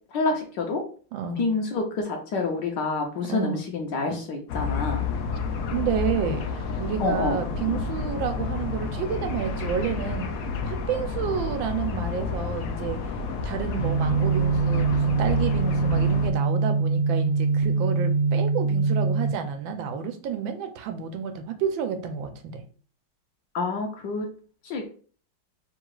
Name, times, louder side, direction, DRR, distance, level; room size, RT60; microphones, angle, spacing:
voice 1, 0.1-0.8 1.4-5.1 7.0-7.4 7.7-7.8 23.5-24.3 24.6-24.9, left 3 dB, 65° left, 2 dB, 1.3 m, -28 dB
voice 2, 1.1-1.5 3.3-3.6 5.7-10.3 10.6-13.0 13.4-22.6, right 7 dB, 80° right, 7 dB, 1.3 m, -30 dB
sound 1, 4.5-16.3, left 4 dB, 80° left, 0.7 m, -30 dB
sound 2, 13.8-19.3, right 4 dB, 60° right, 1.2 m, -23 dB
3.8 x 2.4 x 4.6 m, 0.41 s
omnidirectional pair, 2.2 m